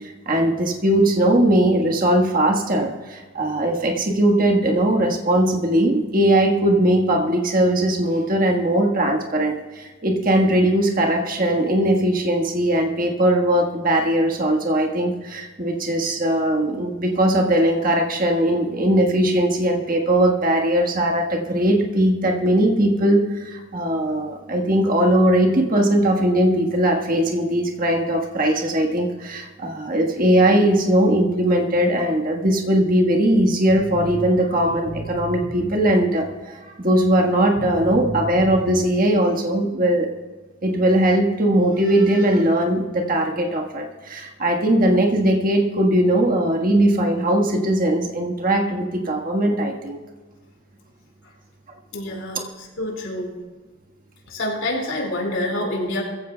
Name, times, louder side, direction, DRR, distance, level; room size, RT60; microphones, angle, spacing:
voice 1, 0.2-36.3 36.8-40.1 40.6-50.0, right 1 dB, 45° right, 1 dB, 1.5 m, -19 dB
sound 1, 33.7-36.3 37.0-37.1 37.6-38.9, equal, 40° left, 4.2 m, -33 dB
voice 2, 51.9-53.3 54.3-56.0, left 1 dB, 70° left, -1 dB, 4.5 m, -27 dB
22.5 x 15.0 x 2.3 m, 1.3 s
head